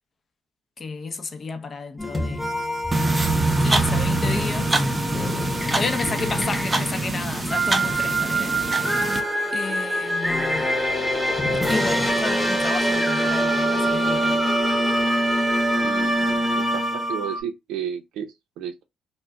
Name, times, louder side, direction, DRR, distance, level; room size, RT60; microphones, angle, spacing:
voice 1, 0.8-2.5 3.6-4.8 5.7-8.5 9.5-10.7 11.7-14.4 16.2-16.6, left 4 dB, 40° left, 0.6 m, -31 dB
sound 1, 2.0-17.4, right 1 dB, 5° left, 0.9 m, -24 dB
sound 2, 2.9-9.2, right 2 dB, 25° right, 0.6 m, -24 dB
voice 2, 15.8-18.8, right 8 dB, 80° right, 0.5 m, -33 dB
2.2 x 2.1 x 3.5 m
supercardioid pair, 70°, 0 cm